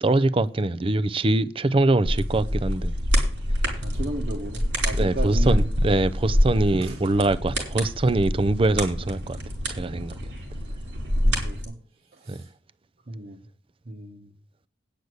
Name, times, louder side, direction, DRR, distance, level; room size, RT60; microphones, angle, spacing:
voice 1, 0.0-3.0 5.0-9.4 9.7-10.3 12.3-12.4, right 2 dB, 30° right, 0.5 m, -23 dB
sound 1, 2.0-11.6, equal, 90° right, 4.9 m, -26 dB
voice 2, 3.8-5.7 6.7-7.0 11.2-11.8 12.1-12.5 13.1-13.5 13.8-14.3, right 1 dB, 55° right, 1.4 m, -35 dB
9.5 x 6.7 x 7.9 m
head